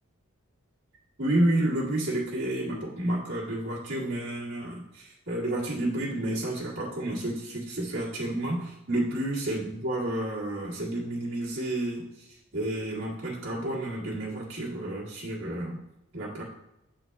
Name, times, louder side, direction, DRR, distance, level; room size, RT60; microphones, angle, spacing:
voice 1, 1.2-12.3 12.5-15.8 16.1-16.4, right 1 dB, 60° right, -6 dB, 1.7 m, -30 dB
6.8 x 4.0 x 3.5 m, 0.86 s
head